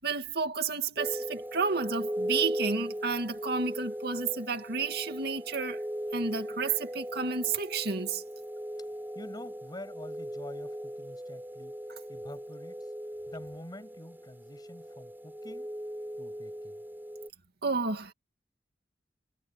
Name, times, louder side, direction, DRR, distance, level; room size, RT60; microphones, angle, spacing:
voice 1, 0.0-5.8 6.1-8.2 17.6-18.1, right 4 dB, 60° right, 2.3 m, -31 dB
sound 1, 1.0-17.3, equal, 10° right, 6.4 m, -38 dB
voice 2, 9.1-11.7 12.1-12.9 13.3-15.7 16.2-16.8, left 1 dB, 25° left, 7.3 m, -47 dB
head